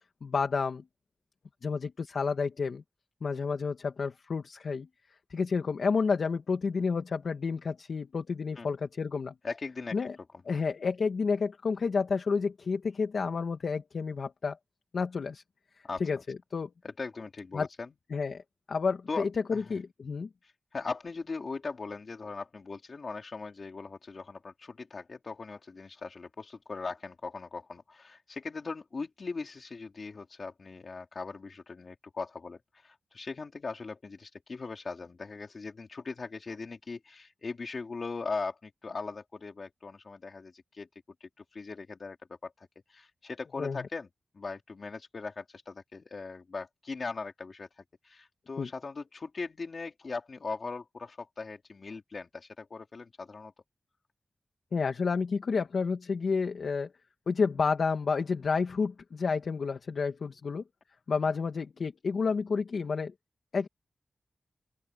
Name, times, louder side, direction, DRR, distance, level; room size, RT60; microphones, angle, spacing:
voice 1, 0.2-0.8 1.6-2.8 3.2-4.9 5.3-9.3 9.9-10.2 10.4-14.6 14.9-15.4 16.0-16.7 17.5-17.7 18.1-18.4 18.7-20.3 43.6-43.8 48.6-48.7 54.7-56.9 57.3-60.6 61.1-63.1 63.5-63.7, left 5 dB, 70° left, 1.6 m, -30 dB
voice 2, 9.4-10.0 15.8-16.0 16.8-17.9 19.1-19.3 19.5-19.8 20.4-40.9 41.2-42.2 42.4-44.1 44.3-53.5, left 4 dB, 50° left, 2.9 m, -39 dB
open air
wide cardioid pair, 145°, 0 cm